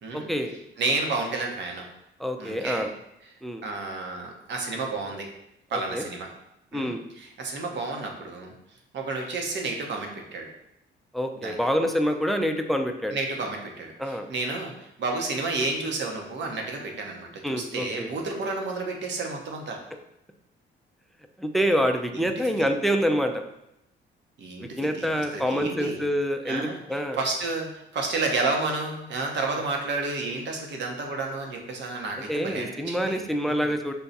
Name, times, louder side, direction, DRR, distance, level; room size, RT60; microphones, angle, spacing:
voice 1, 0.1-0.6 2.2-2.9 3.4-3.6 5.7-6.0 6.7-7.0 11.1-13.2 14.0-14.3 17.4-18.1 21.4-23.4 24.6-27.2 29.5-29.6 32.3-33.9, equal, ahead, 5 dB, 0.4 m, -26 dB
voice 2, 0.8-1.8 2.4-2.8 3.6-5.3 5.7-6.3 6.7-8.5 8.9-10.5 11.4-11.6 13.1-19.8 22.1-22.7 24.4-26.0 26.5-33.7, right 3 dB, 65° right, 1 dB, 1.0 m, -31 dB
5.5 x 2.3 x 4.0 m, 0.83 s
cardioid pair, 90°, 20 cm